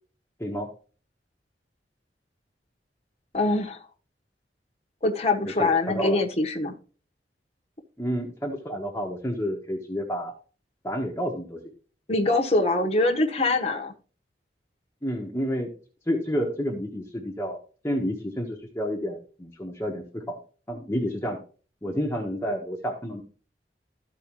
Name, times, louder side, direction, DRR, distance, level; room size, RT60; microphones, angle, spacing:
voice 1, 3.3-3.8 5.0-6.7 12.1-13.9, left 2 dB, 35° left, 2 dB, 1.4 m, -23 dB
voice 2, 5.4-6.2 8.0-10.3 10.8-11.6 15.0-15.7 16.1-17.6 17.8-20.4 20.7-21.4 21.8-23.2, equal, 15° left, -1 dB, 1.3 m, -30 dB
14.0 x 4.7 x 3.1 m, 0.38 s
head